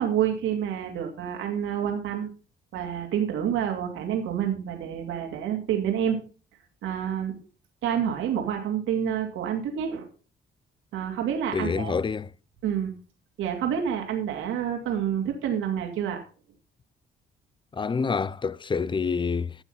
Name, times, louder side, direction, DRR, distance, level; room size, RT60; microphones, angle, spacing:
voice 1, 0.0-2.3 2.7-6.2 6.8-7.4 7.8-10.1 10.9-11.9 12.6-12.9 13.4-16.2, right 9 dB, 90° right, 2.6 m, -28 dB
voice 2, 11.5-12.3 17.7-19.6, left 5 dB, 25° left, 0.5 m, -27 dB
13.0 x 7.4 x 5.7 m
cardioid pair, 90°, 20 cm